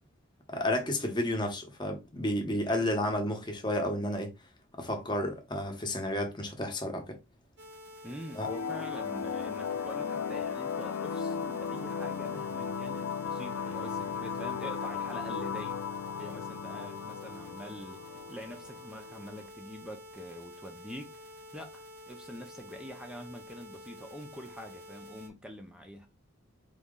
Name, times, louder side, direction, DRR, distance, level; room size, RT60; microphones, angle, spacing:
voice 1, 0.5-4.3 4.8-7.2 8.3-8.5, left 1 dB, 20° left, 1.0 m, -31 dB
sound 1, 7.6-25.3, left 1 dB, 50° right, 0.9 m, -49 dB
voice 2, 8.0-15.8 16.2-26.1, equal, 5° right, 0.6 m, -45 dB
sound 2, 8.4-19.4, left 6 dB, 75° left, 0.3 m, -36 dB
4.1 x 2.9 x 3.7 m
head